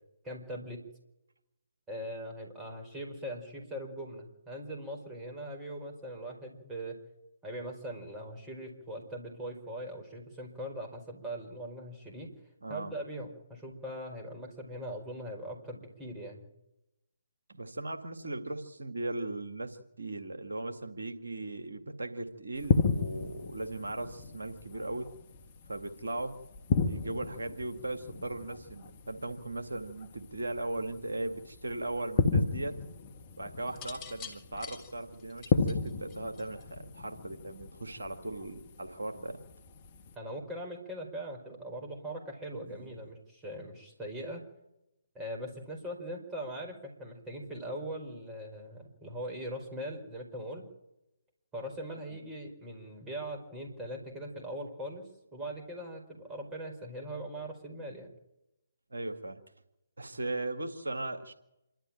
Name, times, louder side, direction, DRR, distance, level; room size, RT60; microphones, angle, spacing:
voice 1, 0.2-0.8 1.9-7.0 7.4-12.3 12.7-16.5 40.1-44.4 45.1-50.7 51.5-58.1, right 1 dB, 15° right, 1 dB, 5.0 m, -41 dB
voice 2, 12.6-12.9 17.5-25.1 25.7-26.4 26.8-32.8 33.4-39.4 42.7-42.9 58.9-59.4 60.0-61.3, right 2 dB, 75° right, 6 dB, 2.0 m, -38 dB
sound 1, 22.6-40.1, left 5 dB, 35° left, 1.3 m, -34 dB
sound 2, 33.7-36.8 37.9-38.3, left 7 dB, 20° left, 3.0 m, -46 dB
27.0 x 13.0 x 9.1 m, 0.89 s
figure-of-eight pair, 140°, 0 cm